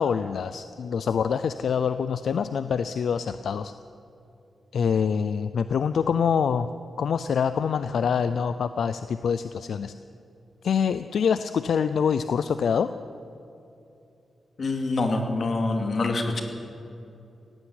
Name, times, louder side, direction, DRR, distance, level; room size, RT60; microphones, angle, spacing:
voice 1, 0.0-3.7 4.7-6.7 7.0-9.9 10.6-12.9, left 7 dB, 70° left, 12 dB, 0.5 m, -25 dB
voice 2, 14.6-16.4, left 2 dB, 45° left, 4 dB, 2.6 m, -25 dB
17.5 x 15.0 x 9.9 m, 2.7 s
wide cardioid pair, 145°, 0 cm